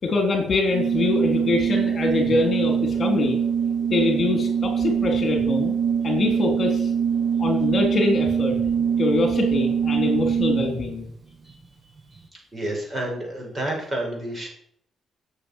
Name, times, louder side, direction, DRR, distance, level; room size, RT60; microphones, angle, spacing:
voice 1, 0.0-3.4 3.9-5.7 6.0-6.9 7.4-8.6 9.0-11.1, left 3 dB, 40° left, 3 dB, 3.8 m, -24 dB
Organ, 0.7-11.0, right 7 dB, 40° right, 1.5 m, -23 dB
voice 2, 12.1-14.5, right 1 dB, 25° right, 0 dB, 7.0 m, -30 dB
14.5 x 8.3 x 7.3 m, 0.68 s
cardioid pair, 120°, 0 cm